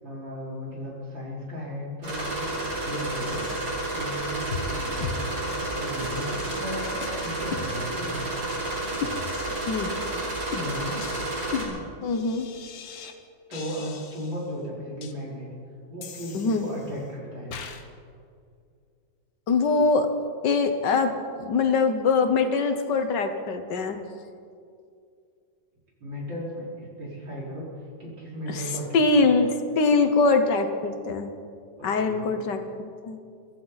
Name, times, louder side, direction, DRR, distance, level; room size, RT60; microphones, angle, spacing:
voice 1, 0.0-3.6 3.9-6.9 7.2-8.2 10.5-11.1 13.5-15.5 15.9-17.6 26.0-29.4 31.8-32.3, equal, 85° right, -6 dB, 5.4 m, -36 dB
sound 1, 2.0-11.6, right 2 dB, 65° right, 4.6 m, -31 dB
sound 2, 4.5-4.7 5.0-5.2 5.5-5.6 6.0-6.1 6.5-6.7 7.0-7.1 7.5-8.2 8.5-8.6 9.0-9.6 10.0-10.2 10.5-13.2 13.5-14.4 15.0-15.1 16.0-17.0 17.5-17.8, left 6 dB, 90° left, 1.8 m, -37 dB
voice 2, 12.0-12.5 16.3-16.6 19.5-20.1 20.4-21.1 21.5-24.0 28.5-28.6 28.9-31.3 31.8-33.2, left 4 dB, 70° left, 7 dB, 1.7 m, -23 dB
24.0 x 14.5 x 4.1 m, 2.4 s
omnidirectional pair, 2.0 m